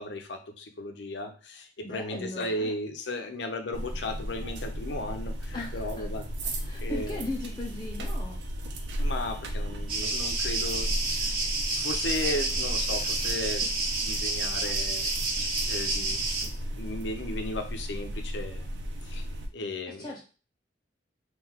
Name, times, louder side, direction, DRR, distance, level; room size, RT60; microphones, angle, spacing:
voice 1, 0.0-6.3 6.5-7.3 8.0-8.1 9.0-11.0 11.8-13.7 14.0-18.8 19.0-19.2 19.5-20.1, left 2 dB, 85° left, 6 dB, 0.7 m, -36 dB
voice 2, 1.8-2.7 5.5-6.1 6.6-8.4 20.0-20.2, left 2 dB, 25° left, -3 dB, 0.6 m, -37 dB
sound 1, 3.7-19.5, equal, 90° right, 0.7 m, -35 dB
sound 2, 9.9-16.5, right 3 dB, 50° right, 1.1 m, -30 dB
3.9 x 2.4 x 4.3 m, 0.36 s
head